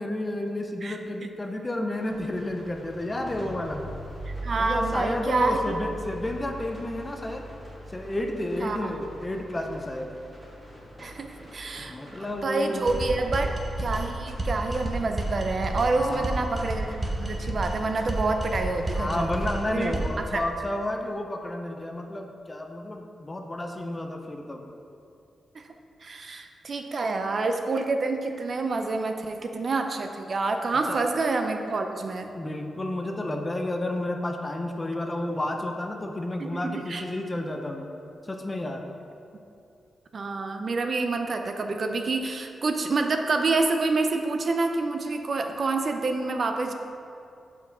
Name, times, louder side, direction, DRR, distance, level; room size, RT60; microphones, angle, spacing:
voice 1, 0.0-3.8 4.6-7.4 7.9-10.1 11.9-12.9 13.2-13.4 15.9-16.4 18.9-24.6 30.9-31.0 32.3-37.9 38.2-38.8, left 1 dB, 20° left, 3 dB, 0.5 m, -31 dB
voice 2, 0.8-1.3 4.3-5.7 8.6-8.9 11.0-13.5 13.8-19.9 25.5-25.6 26.0-32.3 36.4-37.0 40.1-46.7, right 3 dB, 45° right, 5 dB, 0.4 m, -28 dB
sound 1, 2.0-20.2, right 1 dB, 5° right, 1.3 m, -43 dB
sound 2, 12.9-20.2, right 1 dB, 25° right, 0.8 m, -31 dB
5.3 x 4.4 x 6.0 m, 2.6 s
wide cardioid pair, 130°, 0 cm